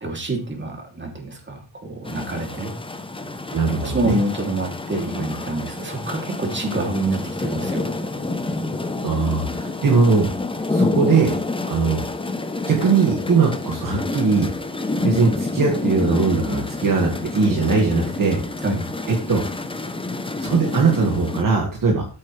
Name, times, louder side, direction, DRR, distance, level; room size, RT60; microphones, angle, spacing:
voice 1, 0.0-2.7 3.8-7.9 18.6-18.9, right 2 dB, 25° right, 2 dB, 2.9 m, -27 dB
sound 1, 2.1-21.4, left 3 dB, 10° left, 0.8 m, -28 dB
voice 2, 3.5-4.2 9.0-10.3 10.7-11.4 11.7-12.0 12.7-14.5 15.0-18.4 19.1-19.4 20.4-22.1, right 4 dB, 45° right, 0 dB, 2.1 m, -20 dB
13.0 x 8.6 x 3.3 m, 0.34 s
wide cardioid pair, 140°, 46 cm